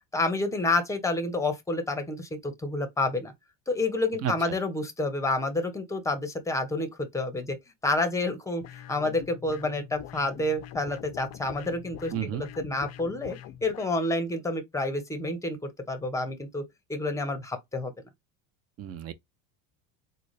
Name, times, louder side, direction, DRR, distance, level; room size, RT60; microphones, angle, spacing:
voice 1, 0.1-3.3 3.7-7.6 7.8-8.6 8.9-16.6 16.9-17.9, left 2 dB, 5° left, 0.8 m, -29 dB
sound 1, 8.6-13.9, left 11 dB, 35° left, 0.4 m, -44 dB
voice 2, 12.1-12.4 18.8-19.1, right 10 dB, 30° right, 0.5 m, -31 dB
3.9 x 2.2 x 3.1 m
supercardioid pair, 125°, 49 cm